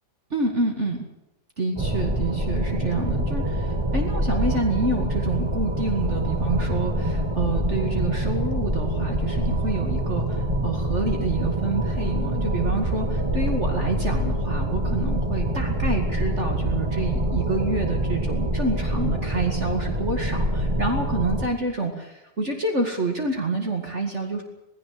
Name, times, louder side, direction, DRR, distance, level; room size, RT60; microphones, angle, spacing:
voice 1, 0.3-1.0 1.6-24.4, right 2 dB, 45° right, 3 dB, 2.5 m, -28 dB
sound 1, 1.8-21.5, right 1 dB, 20° right, 1.7 m, -25 dB
18.5 x 17.0 x 9.4 m, 0.91 s
omnidirectional pair, 1.7 m